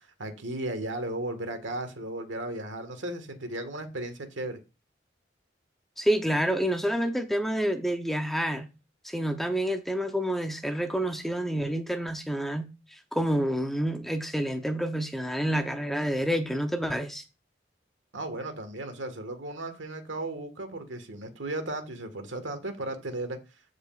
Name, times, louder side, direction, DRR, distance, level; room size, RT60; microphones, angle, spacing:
voice 1, 0.2-4.6 18.1-23.4, right 1 dB, 90° right, 1.6 m, -35 dB
voice 2, 6.0-8.7 9.0-17.2, equal, ahead, 0.7 m, -28 dB
14.5 x 4.9 x 2.4 m
head